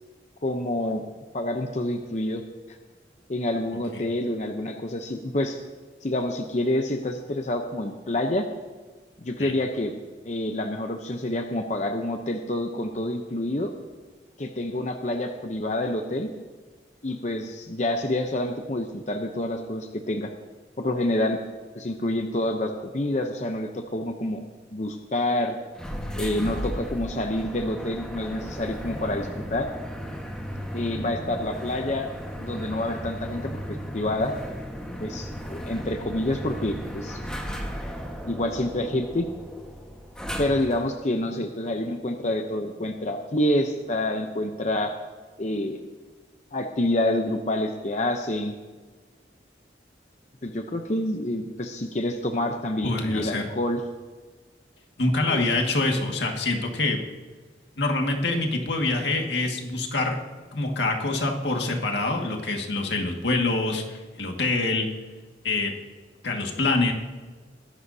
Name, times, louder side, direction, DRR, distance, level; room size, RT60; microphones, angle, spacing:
voice 1, 0.4-1.0 1.3-2.4 3.3-5.6 6.0-8.5 9.2-9.9 10.2-13.7 14.4-16.3 17.0-20.3 20.8-21.4 21.7-24.4 24.7-25.6 26.2-29.7 30.7-32.1 32.4-34.3 35.0-37.2 38.2-39.3 40.4-44.9 45.4-45.8 46.5-48.5 50.4-53.8 55.3-55.4, left 1 dB, 40° left, 5 dB, 0.7 m, -27 dB
sound 1, 25.7-40.9, equal, 5° left, 1.4 m, -35 dB
voice 2, 52.8-53.4 55.0-57.0 57.8-60.2 60.5-64.9 65.4-65.7 66.2-66.9, left 2 dB, 80° left, 2 dB, 1.9 m, -25 dB
21.5 x 11.5 x 2.8 m, 1.4 s
head